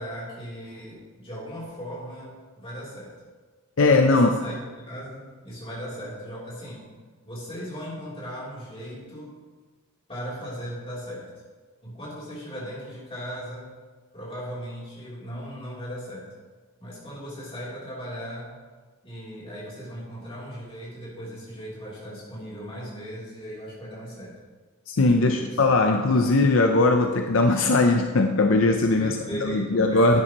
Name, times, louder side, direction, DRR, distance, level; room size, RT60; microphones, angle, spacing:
voice 1, 0.0-3.1 3.9-6.9 7.2-9.3 10.1-11.3 11.8-13.7 14.1-16.3 16.8-18.6 19.0-24.4 24.9-25.6 26.2-26.3 28.9-30.2, equal, 25° left, -7 dB, 3.2 m, -38 dB
voice 2, 3.8-4.3 24.9-30.2, left 2 dB, 65° left, 5 dB, 0.5 m, -20 dB
11.0 x 10.0 x 3.0 m, 1.4 s
head